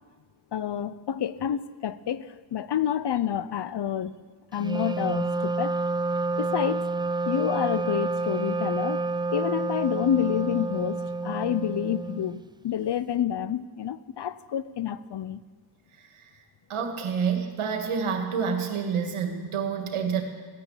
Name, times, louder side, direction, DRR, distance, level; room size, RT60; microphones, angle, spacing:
voice 1, 0.5-4.1 4.5-5.7 6.4-6.9 7.3-9.0 9.3-15.4, left 9 dB, 55° left, 16 dB, 0.8 m, -28 dB
Wind instrument woodwind instrument, 4.6-12.4, right 3 dB, 10° right, 0.3 m, -29 dB
voice 2, 16.7-20.2, right 6 dB, 75° right, 5 dB, 2.1 m, -28 dB
15.5 x 9.7 x 7.4 m, 1.4 s
supercardioid pair, 45°, 50 cm